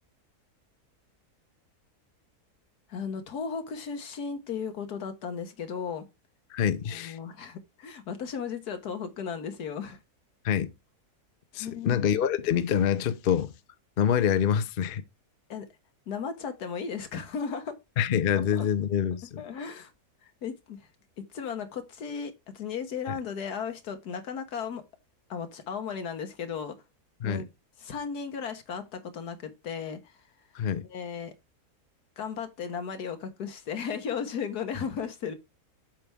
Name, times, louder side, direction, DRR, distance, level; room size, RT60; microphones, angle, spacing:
voice 1, 2.9-6.1 6.9-10.0 11.6-12.0 15.5-15.7 16.1-17.7 18.3-18.7 19.4-19.9 20.2-20.8 21.2-24.8 25.3-26.7 27.2-27.5 27.8-30.1 30.9-31.3 32.2-35.3, left 6 dB, 85° left, 1.7 m, -35 dB
voice 2, 6.5-7.2 10.4-10.7 11.5-13.5 14.0-15.0 18.0-19.4 27.2-27.4 30.5-30.8, left 8 dB, 50° left, 0.7 m, -26 dB
7.8 x 5.7 x 3.5 m
omnidirectional pair, 1.6 m